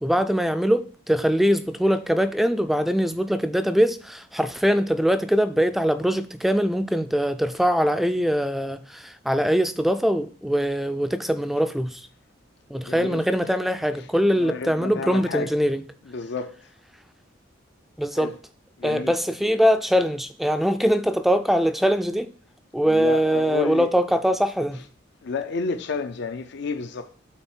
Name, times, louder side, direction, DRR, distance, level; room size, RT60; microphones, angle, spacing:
voice 1, 0.0-12.0 12.7-15.8 18.0-18.3 18.8-22.3 22.7-24.8, equal, ahead, 0.3 m, -22 dB
voice 2, 12.8-13.5 14.0-14.1 14.3-15.5 16.1-16.6 18.1-18.3 18.8-19.1 22.8-23.9 25.2-27.2, left 4 dB, 60° left, 0.5 m, -31 dB
8.7 x 3.9 x 4.4 m
head